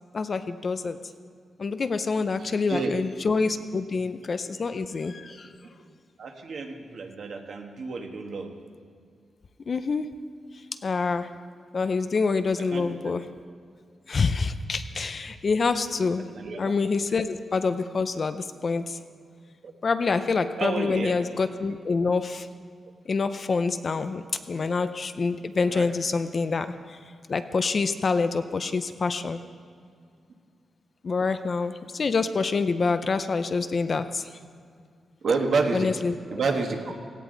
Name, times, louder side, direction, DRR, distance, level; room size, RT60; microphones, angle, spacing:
voice 1, 0.1-1.0 1.6-5.5 9.7-10.1 10.8-11.3 11.7-13.3 14.1-16.3 16.6-19.0 19.8-22.5 23.1-27.0 27.3-29.4 31.0-34.3 35.7-36.4, left 4 dB, 35° left, 10 dB, 0.5 m, -26 dB
voice 2, 6.2-8.5 12.7-13.0 16.3-16.6 19.6-19.7 20.6-21.2 25.6-25.9 35.2-35.9 36.3-36.9, right 4 dB, 50° right, 3 dB, 1.4 m, -29 dB
17.5 x 16.5 x 3.9 m, 2.1 s
wide cardioid pair, 175°, 0 cm